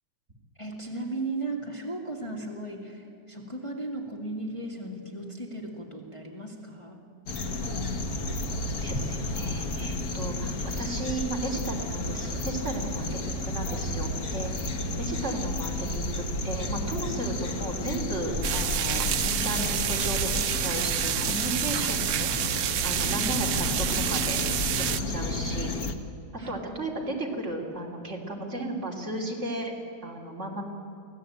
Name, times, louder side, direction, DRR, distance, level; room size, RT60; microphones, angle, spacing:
voice 1, 0.6-7.0 26.4-26.5, right 2 dB, 15° left, 0 dB, 2.2 m, -36 dB
sound 1, 7.3-25.9, left 2 dB, 55° left, 1.7 m, -32 dB
voice 2, 8.8-22.3 22.8-24.6 25.1-25.7 26.5-29.7 30.0-30.6, right 2 dB, 35° right, -1 dB, 3.6 m, -34 dB
sound 2, 18.4-25.0, right 12 dB, 75° right, 1.4 m, -28 dB
24.5 x 16.0 x 8.8 m, 2.7 s
omnidirectional pair, 2.0 m